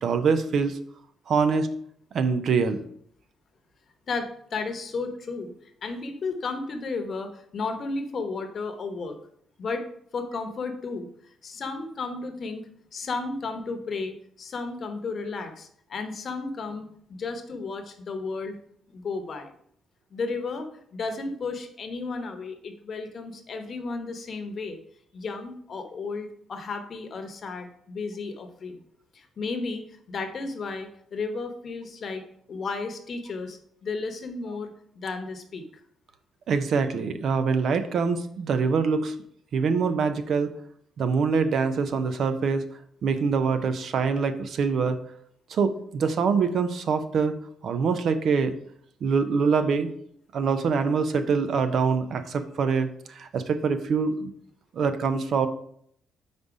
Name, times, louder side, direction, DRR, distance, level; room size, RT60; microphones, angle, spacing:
voice 1, 0.0-0.8 1.3-1.7 2.1-2.8 36.5-39.1 39.5-40.5 41.0-42.6 43.0-45.0 45.5-47.4 47.6-48.5 49.0-49.9 50.3-54.3 54.7-55.5, right 5 dB, 65° right, 10 dB, 0.6 m, -24 dB
voice 2, 4.1-5.5 5.8-9.2 9.6-9.9 10.1-18.6 18.9-19.5 20.1-24.8 25.1-28.8 29.1-35.6, left 4 dB, 50° left, 6 dB, 0.9 m, -33 dB
5.1 x 4.0 x 4.8 m, 0.66 s
cardioid pair, 90°, 0 cm